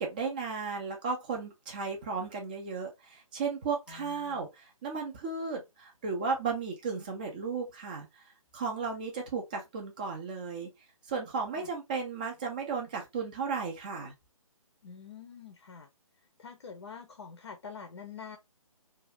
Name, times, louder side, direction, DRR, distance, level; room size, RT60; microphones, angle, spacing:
voice 1, 0.0-8.2 8.5-10.7 11.1-14.1, right 5 dB, 15° right, 0.4 m, -35 dB
voice 2, 3.9-4.5 11.5-11.7 14.8-15.9 16.4-18.4, left 6 dB, 45° left, 0.6 m, -46 dB
2.6 x 2.3 x 3.1 m
figure-of-eight pair, 140°, 19 cm